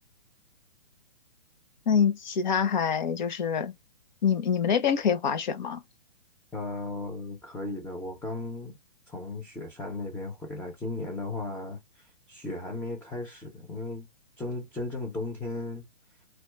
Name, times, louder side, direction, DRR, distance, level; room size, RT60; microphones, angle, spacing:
voice 1, 1.9-3.7 4.2-5.8, left 7 dB, 50° left, 0.8 m, -25 dB
voice 2, 6.5-8.8 9.1-14.1 14.4-15.8, left 2 dB, 5° left, 0.6 m, -36 dB
4.1 x 2.3 x 2.3 m
figure-of-eight pair, 125°, 30 cm